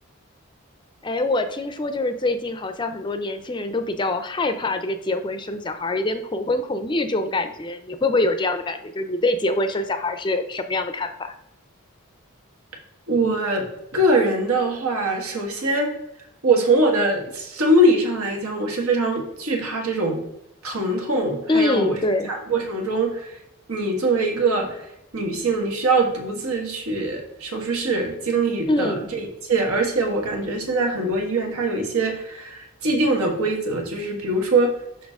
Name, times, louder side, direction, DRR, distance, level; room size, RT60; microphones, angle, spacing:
voice 1, 1.0-11.3 21.5-22.3 28.7-29.1, left 2 dB, 20° left, 9 dB, 0.4 m, -24 dB
voice 2, 13.1-13.7 13.9-15.9 16.4-20.2 20.6-22.0 22.3-23.4 23.7-24.8 25.1-34.7, right 2 dB, 85° right, 2 dB, 1.6 m, -22 dB
6.3 x 5.7 x 3.6 m, 0.82 s
head